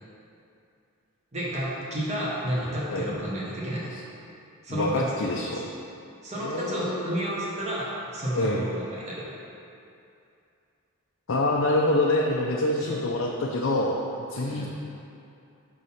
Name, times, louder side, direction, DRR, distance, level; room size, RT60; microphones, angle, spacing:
voice 1, 1.3-3.9 4.6-5.0 6.2-9.3 12.8-13.0 14.4-14.7, equal, 30° right, -6 dB, 1.1 m, -31 dB
voice 2, 4.7-5.7 6.3-7.1 8.3-8.7 11.3-14.0 14.3-14.7, left 1 dB, 60° left, -2 dB, 0.5 m, -26 dB
6.3 x 5.4 x 4.1 m, 2.6 s
head